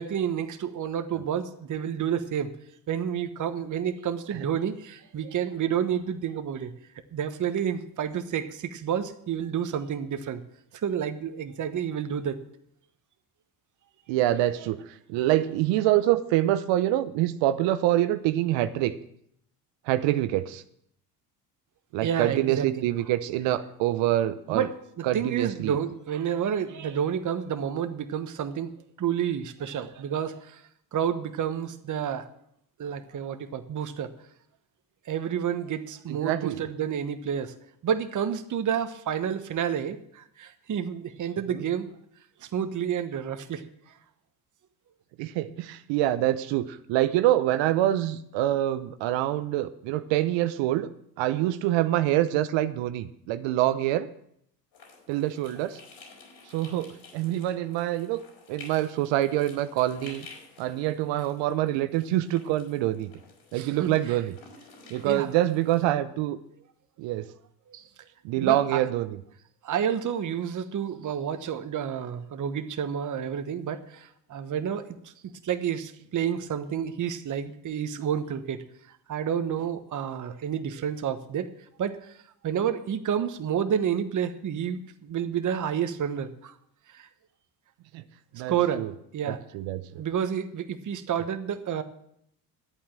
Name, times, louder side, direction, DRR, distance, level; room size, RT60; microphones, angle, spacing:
voice 1, 0.0-2.5 2.9-6.7 7.1-10.4 10.8-12.4 14.6-14.7 22.0-22.9 24.5-24.7 25.0-28.7 29.0-30.6 30.9-32.3 32.8-34.1 35.0-37.5 37.8-41.9 42.4-43.9 63.5-64.2 64.9-65.3 67.7-67.9 68.4-68.8 69.6-75.1 75.4-81.5 81.8-82.1 82.4-86.5 86.9-87.1 88.5-88.8 89.1-89.4 90.0-91.8, right 8 dB, 40° right, 9 dB, 1.2 m, -30 dB
voice 2, 14.1-18.9 19.9-20.6 21.9-24.7 25.0-25.8 36.1-36.6 41.5-41.6 45.2-50.9 51.2-54.1 55.1-55.8 56.5-58.2 58.5-60.3 60.6-63.1 63.5-64.3 64.9-66.4 67.0-67.3 68.2-69.2 87.9-88.0 88.3-88.9 89.3-89.8, right 14 dB, 65° right, 12 dB, 0.8 m, -26 dB
sound 1, 54.7-65.8, left 4 dB, 60° left, 4.4 m, -51 dB
11.5 x 8.6 x 7.4 m, 0.72 s
hypercardioid pair, 65°, 49 cm